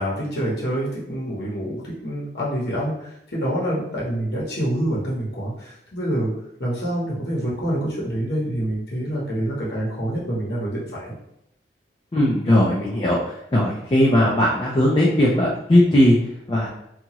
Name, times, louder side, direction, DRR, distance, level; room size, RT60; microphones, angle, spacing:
voice 1, 0.0-3.0 3.3-6.3 6.6-11.1, right 1 dB, 65° left, -5 dB, 0.9 m, -26 dB
voice 2, 12.1-16.2 16.5-16.7, left 1 dB, 30° left, -4 dB, 0.4 m, -18 dB
2.8 x 2.3 x 2.9 m, 0.79 s
head